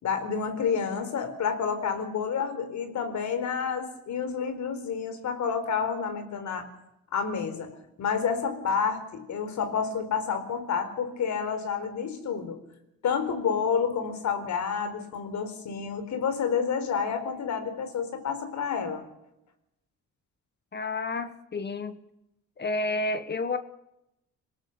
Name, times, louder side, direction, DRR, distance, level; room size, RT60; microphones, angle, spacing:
voice 1, 0.0-6.7 7.1-7.7 8.0-12.6 13.0-19.1, left 6 dB, 70° left, 8 dB, 4.4 m, -29 dB
voice 2, 20.7-22.0 22.6-23.6, left 2 dB, 35° left, 10 dB, 1.3 m, -30 dB
26.0 x 18.5 x 6.9 m, 0.86 s
cardioid pair, 90°, 30 cm